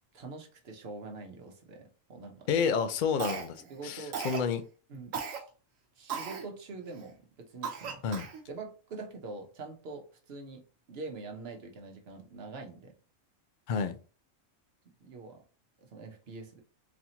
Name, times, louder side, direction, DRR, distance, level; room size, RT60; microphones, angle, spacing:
voice 1, 0.1-2.5 3.7-4.2 4.9-5.4 6.0-8.0 8.5-10.6 10.9-12.9 15.0-15.4 15.8-16.6, right 3 dB, 55° right, 1.0 m, -44 dB
voice 2, 2.5-4.6 8.0-8.3 13.7-14.0, left 6 dB, 65° left, 0.5 m, -30 dB
Cough, 3.2-3.7 4.1-4.5 5.1-5.4 6.1-6.4 7.0-7.1 7.6-8.4, right 6 dB, 85° right, 1.1 m, -36 dB
4.1 x 2.9 x 2.8 m
omnidirectional pair, 1.3 m